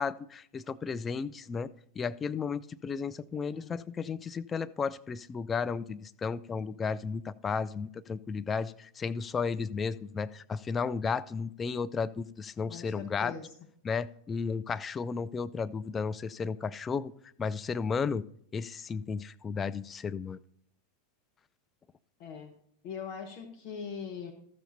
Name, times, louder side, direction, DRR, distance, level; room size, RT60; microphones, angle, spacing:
voice 1, 0.0-13.3 13.8-17.1 17.4-18.2 18.5-20.4, left 5 dB, 20° left, 12 dB, 0.3 m, -33 dB
voice 2, 3.5-3.8 12.7-13.5 22.2-22.5 22.8-24.3, left 6 dB, 45° left, 3 dB, 1.1 m, -41 dB
13.0 x 6.9 x 4.1 m, 0.68 s
figure-of-eight pair, 90°, 0 cm